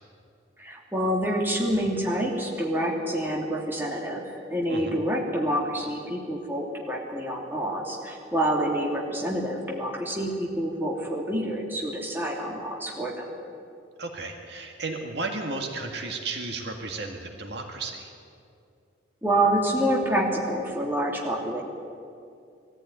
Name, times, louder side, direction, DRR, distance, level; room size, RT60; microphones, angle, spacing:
voice 1, 0.6-4.2 4.5-13.3 19.2-21.6, right 1 dB, 10° right, -2 dB, 2.7 m, -27 dB
voice 2, 14.0-18.1, right 3 dB, 65° right, 3 dB, 2.0 m, -34 dB
20.0 x 14.5 x 9.6 m, 2.5 s
head